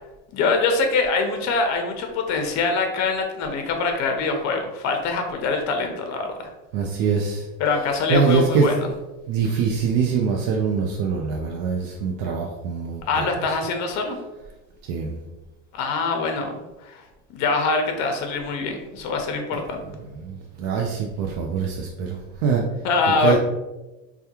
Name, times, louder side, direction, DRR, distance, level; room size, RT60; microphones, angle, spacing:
voice 1, 0.3-6.3 7.6-8.9 13.1-14.2 15.7-17.0 17.3-19.8 22.8-23.4, left 4 dB, 45° left, 4 dB, 0.6 m, -24 dB
voice 2, 6.7-7.5 8.1-8.7 9.3-13.3 14.9-15.2 20.1-22.6 23.2-23.4, right 5 dB, 65° right, 0 dB, 0.5 m, -23 dB
3.4 x 2.3 x 2.8 m, 1.1 s
cardioid pair, 140°, 38 cm